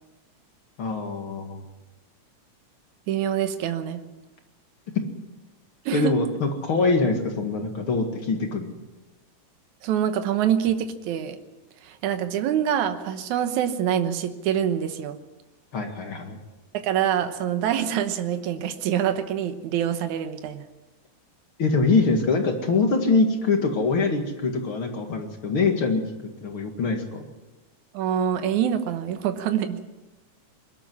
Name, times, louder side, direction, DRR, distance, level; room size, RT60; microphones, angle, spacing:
voice 1, 0.8-1.6 5.9-8.8 15.7-16.4 21.6-26.0 26.4-27.3, left 3 dB, 50° left, 4 dB, 2.6 m, -24 dB
voice 2, 3.1-4.0 5.9-6.2 9.8-11.4 11.8-15.2 16.7-20.6 27.9-29.8, right 9 dB, 80° right, 8 dB, 2.5 m, -25 dB
22.0 x 12.5 x 9.7 m, 1.1 s
omnidirectional pair, 3.3 m